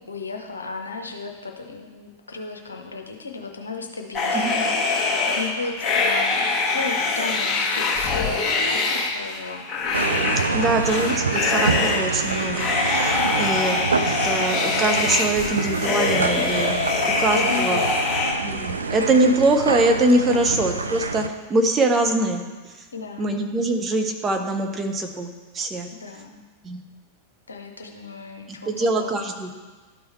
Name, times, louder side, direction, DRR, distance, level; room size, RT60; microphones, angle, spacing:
voice 1, 0.0-4.9 5.4-6.5 6.7-9.6 10.4-10.8 16.9-18.1 20.1-20.6 22.9-23.4 26.0-26.4 27.5-29.5, left 4 dB, 75° left, 3 dB, 0.8 m, -34 dB
sound 1, 4.1-18.3, left 3 dB, 25° left, 1.4 m, -24 dB
sound 2, 9.9-21.3, right 4 dB, 75° right, 0.4 m, -27 dB
voice 2, 10.5-16.8 17.2-17.9 18.4-22.4 23.2-25.9 26.6-26.8 28.5-29.5, right 2 dB, 20° right, 5 dB, 0.8 m, -23 dB
12.5 x 4.7 x 3.2 m, 1.3 s
figure-of-eight pair, 90°, 0 cm